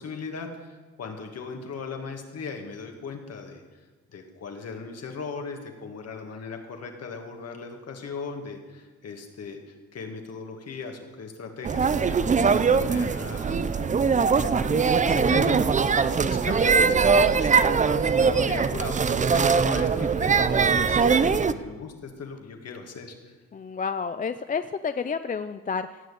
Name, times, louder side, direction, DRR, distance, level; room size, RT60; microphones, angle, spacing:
voice 1, 0.0-3.6 4.1-13.9 14.4-15.8 16.2-23.3, left 4 dB, 55° left, 4 dB, 2.3 m, -38 dB
sound 1, 11.6-21.5, right 5 dB, 25° right, 0.5 m, -21 dB
voice 2, 23.5-26.0, left 5 dB, 25° left, 11 dB, 0.5 m, -30 dB
17.0 x 6.6 x 8.2 m, 1.3 s
cardioid pair, 90°, 30 cm